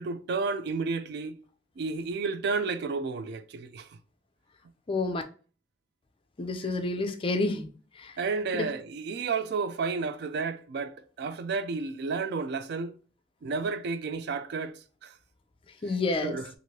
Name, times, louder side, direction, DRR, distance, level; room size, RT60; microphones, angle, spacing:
voice 1, 0.0-1.4 1.8-3.9 8.2-12.9 13.4-15.2 16.2-16.5, right 4 dB, 60° right, 0.3 m, -31 dB
voice 2, 4.9-5.2 6.4-7.7 8.0-8.2 8.5-8.7 15.8-16.4, left 3 dB, 30° left, 0.4 m, -29 dB
3.1 x 2.6 x 2.7 m
head